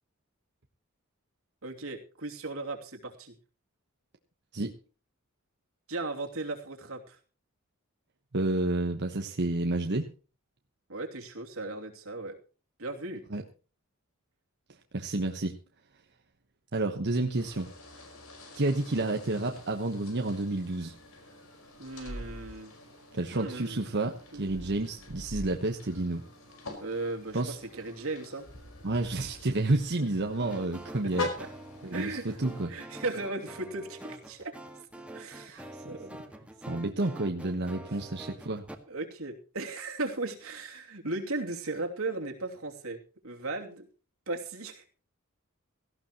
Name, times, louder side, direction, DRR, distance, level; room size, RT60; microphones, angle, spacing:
voice 1, 1.6-3.4 5.9-7.2 10.9-12.4 12.8-13.2 21.8-22.7 23.3-23.8 24.3-24.5 26.8-28.5 31.0-31.5 31.9-32.2 32.7-34.6 35.1-36.1 37.9-38.0 38.9-43.8 44.3-44.8, right 2 dB, 75° right, 2 dB, 2.8 m, -37 dB
voice 2, 8.3-10.1 13.3-13.4 14.9-15.6 16.7-17.7 18.5-20.9 23.1-26.2 27.3-27.6 28.8-31.3 31.8-32.7 35.5-36.0 36.7-38.7, right 2 dB, 55° right, 4 dB, 1.2 m, -30 dB
sound 1, 17.3-32.7, left 3 dB, 70° left, 4.9 m, -45 dB
sound 2, 22.0-22.6 24.4-25.5 25.9-26.0, right 1 dB, 15° left, 4.3 m, -42 dB
sound 3, 30.4-38.8, right 1 dB, 5° right, 1.8 m, -46 dB
17.5 x 15.5 x 3.0 m, 0.35 s
head